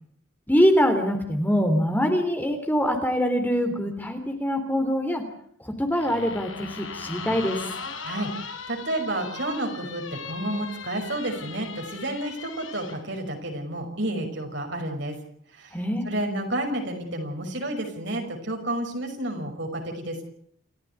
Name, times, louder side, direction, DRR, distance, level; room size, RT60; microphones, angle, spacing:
voice 1, 0.5-5.2 5.6-7.7 15.7-16.1, equal, 10° left, 6 dB, 3.3 m, -24 dB
sound 1, 5.9-13.0, left 5 dB, 75° left, 5.8 m, -38 dB
voice 2, 8.0-15.2 15.5-15.8 16.0-20.2, right 1 dB, 60° right, 2 dB, 5.6 m, -30 dB
29.0 x 15.0 x 8.3 m, 0.67 s
head